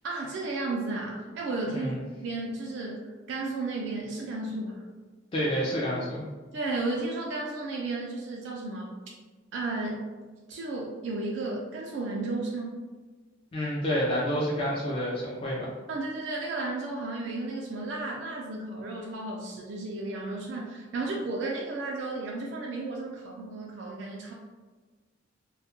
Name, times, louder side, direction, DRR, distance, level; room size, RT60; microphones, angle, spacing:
voice 1, 0.0-1.9 2.2-4.8 6.5-9.0 9.5-10.0 10.5-12.8 15.9-24.3, right 2 dB, 70° right, -2 dB, 0.3 m, -33 dB
voice 2, 5.3-6.3 13.5-15.7, equal, 30° left, -6 dB, 0.3 m, -29 dB
2.2 x 2.1 x 2.8 m, 1.3 s
head